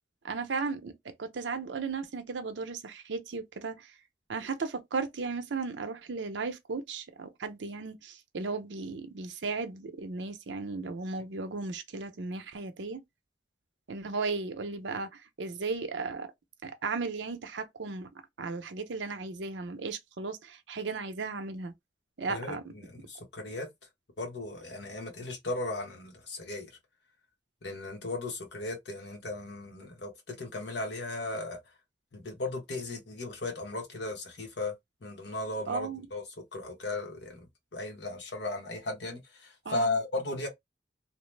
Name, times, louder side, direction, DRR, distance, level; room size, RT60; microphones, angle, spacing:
voice 1, 0.2-0.9 1.2-3.8 4.3-13.0 13.9-15.1 15.4-16.3 16.6-18.1 18.4-21.7 22.2-22.6 35.7-36.0 39.7-40.0, right 4 dB, 85° right, 0.6 m, -35 dB
voice 2, 22.3-23.7 24.2-26.7 27.6-31.6 32.1-34.7 35.0-36.2 36.5-37.4 37.7-40.5, left 2 dB, 70° left, 1.0 m, -36 dB
2.9 x 2.0 x 3.2 m
head